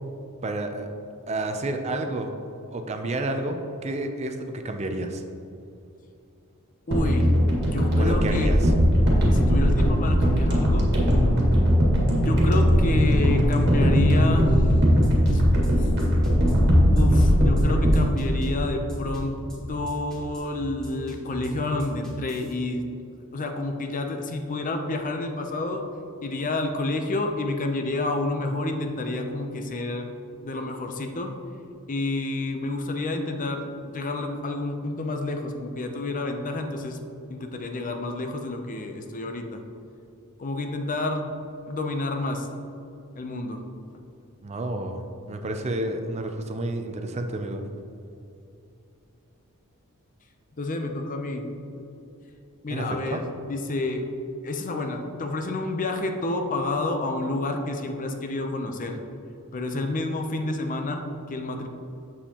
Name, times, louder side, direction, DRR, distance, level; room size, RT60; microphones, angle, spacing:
voice 1, 0.4-0.9 1.3-2.3 2.7-5.2 8.0-8.7 44.4-45.0 45.3-47.6 52.7-53.2, right 2 dB, 30° right, 6 dB, 0.4 m, -30 dB
voice 2, 6.9-8.6 9.3-10.9 12.2-14.6 15.3-15.4 15.8-15.9 16.9-19.4 19.7-22.8 23.1-25.9 26.2-30.1 30.4-31.3 31.9-37.0 37.3-39.6 40.4-41.3 41.7-42.5 43.2-43.6 50.6-51.5 51.7-51.8 52.6-54.1 54.4-59.0 59.5-61.7, left 2 dB, 35° left, 5 dB, 0.6 m, -29 dB
sound 1, 6.9-19.2 19.5-19.7, equal, 50° right, 1.6 m, -20 dB
sound 2, 15.0-22.5, left 1 dB, 5° left, 1.3 m, -40 dB
7.2 x 6.9 x 2.9 m, 2.7 s
head